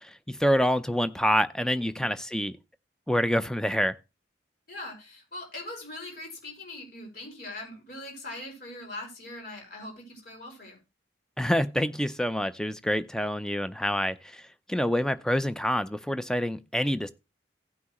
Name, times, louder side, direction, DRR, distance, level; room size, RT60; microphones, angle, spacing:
voice 1, 0.0-2.5 3.1-3.9 11.4-14.4 14.7-17.1, equal, 5° left, 0.5 m, -27 dB
voice 2, 4.7-10.8, left 2 dB, 55° left, 4.6 m, -41 dB
16.5 x 6.0 x 3.0 m
head